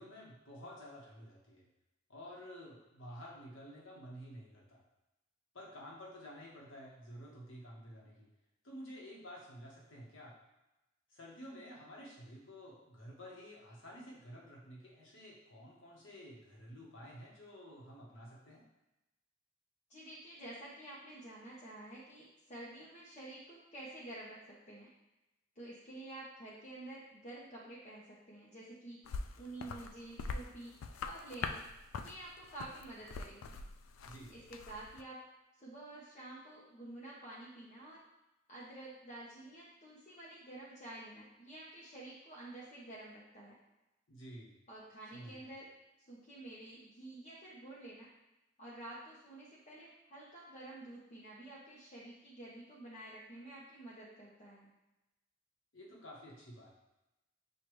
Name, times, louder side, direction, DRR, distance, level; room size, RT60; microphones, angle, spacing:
voice 1, 0.0-1.6 2.1-4.8 5.5-8.3 8.6-10.3 11.1-18.6 34.0-34.3 44.1-44.5 45.1-45.5 55.7-56.7, equal, 70° left, -3 dB, 1.2 m, -51 dB
voice 2, 19.9-24.9 25.6-29.1 29.3-31.6 32.0-33.6 34.3-35.2 35.6-38.0 38.5-43.5 44.7-45.7 46.0-48.1 48.6-54.7, right 1 dB, 35° left, -7 dB, 0.8 m, -50 dB
sound 1, 29.0-35.0, left 4 dB, 90° left, 0.3 m, -44 dB
6.7 x 2.5 x 3.1 m, 0.98 s
head